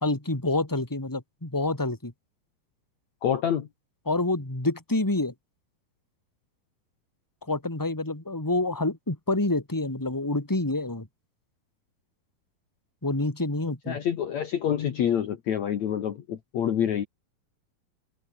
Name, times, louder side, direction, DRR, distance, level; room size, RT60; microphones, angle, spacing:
voice 1, 0.0-2.1 4.0-5.3 7.4-11.1 13.0-14.0, left 2 dB, 5° left, 3.3 m, -27 dB
voice 2, 3.2-3.7 13.9-17.1, left 9 dB, 55° left, 2.6 m, -27 dB
omnidirectional pair, 4.2 m